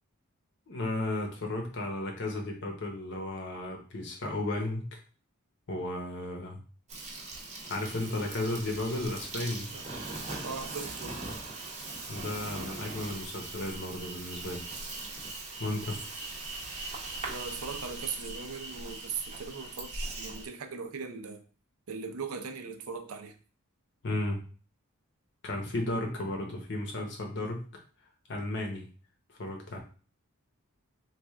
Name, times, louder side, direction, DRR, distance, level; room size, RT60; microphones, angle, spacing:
voice 1, 0.7-5.0 5.7-6.6 7.7-9.7 12.1-14.7 15.6-16.0 24.0-24.4 25.4-27.6 28.3-28.9 29.4-29.8, left 1 dB, 55° left, 2 dB, 0.9 m, -34 dB
Insect, 6.9-20.5, right 2 dB, 30° right, 0.7 m, -40 dB
voice 2, 10.4-11.2 17.3-21.4 21.9-23.4, right 5 dB, 70° right, 6 dB, 0.5 m, -39 dB
3.2 x 2.4 x 3.5 m, 0.38 s
head